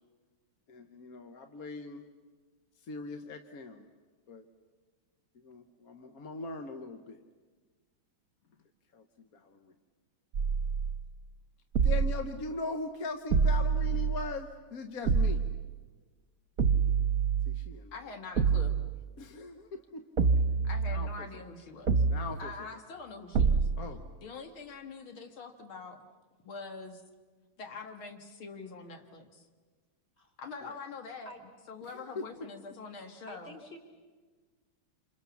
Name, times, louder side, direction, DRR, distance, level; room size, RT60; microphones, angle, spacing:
voice 1, 0.7-2.0 2.8-3.9 4.3-4.5 5.4-7.2 8.9-9.0 9.3-9.7 11.8-15.4 17.5-17.9 19.2-20.6 20.9-21.3 22.1-22.5 23.8-24.2 30.6-30.8 31.9-32.3, left 3 dB, 50° left, 6 dB, 1.4 m, -40 dB
sound 1, 10.3-11.1 11.7-12.4 13.3-14.3 15.1-15.7 16.6-17.7 18.4-19.0 20.2-21.3 21.9-22.5 23.3-24.0, right 5 dB, 50° right, 1.3 m, -27 dB
voice 2, 17.9-18.8 20.6-22.0 22.4-23.7 24.2-26.1 26.4-27.0 27.6-29.5 30.4-31.3 31.7-33.5, left 4 dB, 80° left, 5 dB, 2.5 m, -44 dB
voice 3, 33.3-33.8, left 1 dB, 30° left, 2 dB, 3.6 m, -48 dB
28.5 x 27.0 x 7.1 m, 1.4 s
omnidirectional pair, 2.2 m